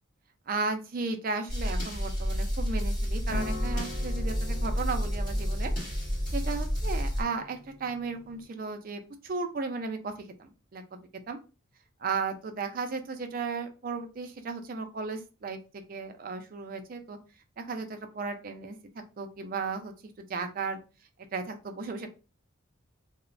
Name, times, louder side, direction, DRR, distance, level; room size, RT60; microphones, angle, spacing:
voice 1, 0.5-5.7 6.3-11.0 11.3-11.4 12.0-15.6 15.9-17.2 17.6-18.8 19.2-19.9 20.3-20.8 21.3-22.1, right 4 dB, 45° right, 6 dB, 0.4 m, -35 dB
sound 1, 1.5-7.2, equal, 40° left, 1.5 m, -30 dB
sound 2, 3.3-8.4, left 2 dB, 5° left, 1.3 m, -44 dB
2.9 x 2.1 x 2.5 m, 0.31 s
head